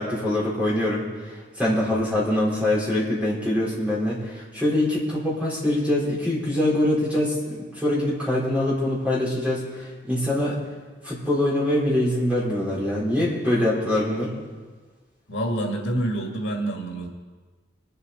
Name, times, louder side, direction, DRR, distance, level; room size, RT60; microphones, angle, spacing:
voice 1, 0.0-10.6 11.0-14.3, left 1 dB, 5° right, -7 dB, 4.3 m, -24 dB
voice 2, 15.3-17.1, right 1 dB, 85° left, 1 dB, 2.1 m, -27 dB
23.5 x 8.0 x 4.2 m, 1.4 s
head